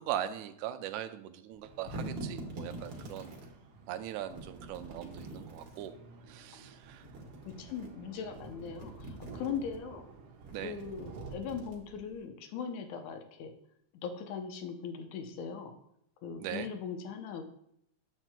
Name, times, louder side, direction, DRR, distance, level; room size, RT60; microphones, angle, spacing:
voice 1, 0.0-3.3 3.9-6.0 6.3-7.1 10.5-10.8 16.4-16.7, right 11 dB, 85° right, 9 dB, 2.0 m, -40 dB
sound 1, 1.5-3.5 4.3-5.9 6.8-7.9 8.3-9.8 10.4-12.2, right 1 dB, 50° right, 1.6 m, -45 dB
sound 2, 1.6-11.3, right 4 dB, 65° right, 1.5 m, -52 dB
voice 2, 7.4-10.0 10.6-13.5 14.0-15.7 16.2-17.4, left 6 dB, 80° left, 5 dB, 2.1 m, -40 dB
8.8 x 7.4 x 2.2 m, 0.74 s
omnidirectional pair, 3.3 m